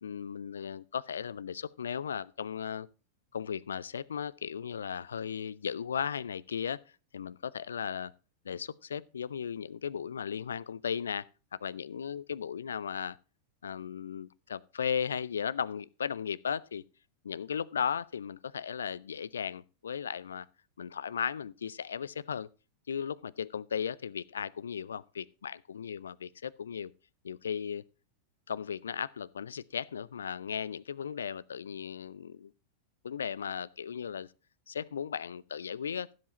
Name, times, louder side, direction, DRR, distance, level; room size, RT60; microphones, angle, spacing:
voice 1, 0.0-2.9 3.3-6.8 7.1-8.1 8.4-13.2 13.6-16.8 17.2-20.5 20.8-22.5 22.9-26.9 27.2-27.8 28.5-32.5 33.0-34.3 34.7-36.1, left 7 dB, 70° left, 0.4 m, -36 dB
15.5 x 7.7 x 2.9 m
figure-of-eight pair, 90°, 0 cm